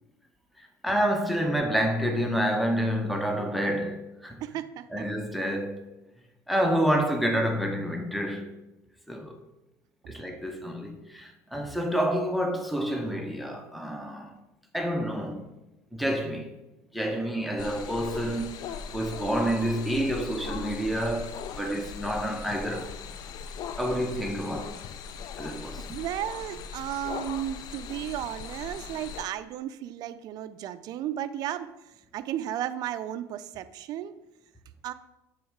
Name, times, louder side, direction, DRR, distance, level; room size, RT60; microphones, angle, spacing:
voice 1, 0.8-4.4 4.9-5.8 6.5-8.5 9.1-9.3 10.1-14.3 14.7-15.4 15.9-16.5 16.9-18.5 18.9-22.9 23.8-24.8 25.4-25.9, equal, ahead, 0.8 m, -28 dB
voice 2, 4.4-5.0 25.9-31.7 32.1-34.1 34.8-34.9, right 11 dB, 55° right, 0.4 m, -34 dB
sound 1, 17.6-29.2, left 6 dB, 55° left, 0.5 m, -39 dB
7.1 x 3.1 x 4.7 m
supercardioid pair, 105°, 8 cm